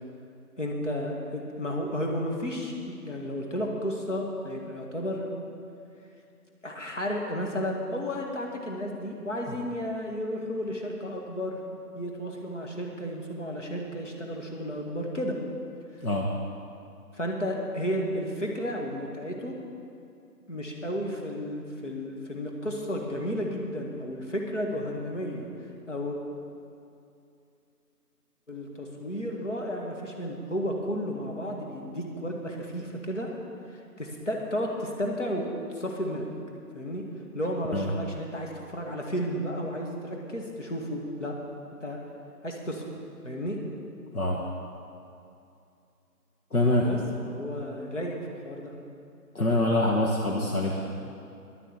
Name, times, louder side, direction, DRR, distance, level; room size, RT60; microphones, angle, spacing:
voice 1, 0.6-5.3 6.6-11.6 12.0-15.4 17.1-19.6 20.5-25.5 25.9-26.2 28.5-33.3 33.7-36.3 36.7-37.0 37.3-41.3 41.8-42.0 42.4-42.8 43.2-43.6 46.8-47.0 47.2-48.7, equal, 50° left, 0 dB, 1.8 m, -32 dB
voice 2, 46.5-46.9 49.3-51.1, left 1 dB, 65° left, -1 dB, 1.3 m, -25 dB
11.0 x 7.0 x 8.6 m, 2.6 s
figure-of-eight pair, 180°, 47 cm